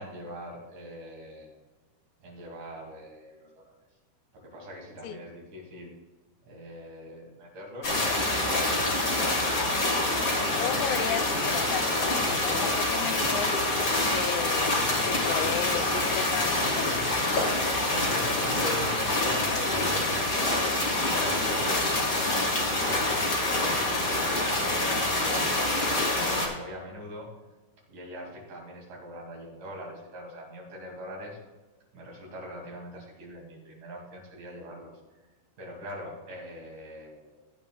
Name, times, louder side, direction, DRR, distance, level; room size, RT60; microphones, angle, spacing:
voice 1, 0.0-1.5 2.2-3.8 4.3-5.9 6.5-8.6 17.7-27.3 27.9-31.4 31.9-34.9 35.6-37.4, equal, 50° right, -3 dB, 3.7 m, -42 dB
sound 1, 7.8-26.5, left 2 dB, 60° left, 0.8 m, -26 dB
voice 2, 10.6-13.6 14.1-17.0 18.4-18.5, left 9 dB, 85° left, 8 dB, 2.9 m, -34 dB
16.0 x 8.9 x 2.3 m, 1.2 s
omnidirectional pair, 5.0 m